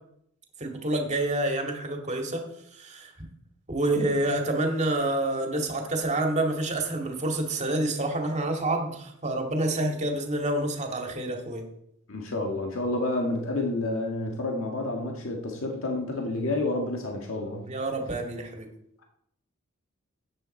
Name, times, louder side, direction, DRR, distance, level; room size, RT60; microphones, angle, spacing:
voice 1, 0.6-2.4 2.7-3.1 3.7-11.6 17.6-18.7, right 1 dB, 35° right, 2 dB, 2.1 m, -28 dB
voice 2, 12.1-17.7, left 2 dB, 75° left, 1 dB, 1.7 m, -29 dB
13.5 x 9.2 x 4.4 m, 0.73 s
head